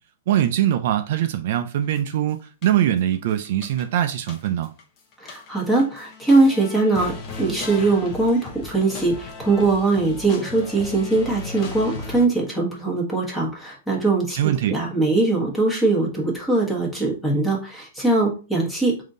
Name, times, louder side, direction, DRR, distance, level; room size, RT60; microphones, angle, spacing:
voice 1, 0.3-4.7 14.4-14.8, right 11 dB, 55° right, 0.4 m, -22 dB
sound 1, 2.0-2.1 2.6-3.1 3.4-4.8 5.1-12.3, left 4 dB, 30° left, 0.8 m, -36 dB
voice 2, 5.2-14.4 14.7-19.0, right 3 dB, 5° left, 1.2 m, -21 dB
3.5 x 2.7 x 3.7 m
hypercardioid pair, 150°, 0 cm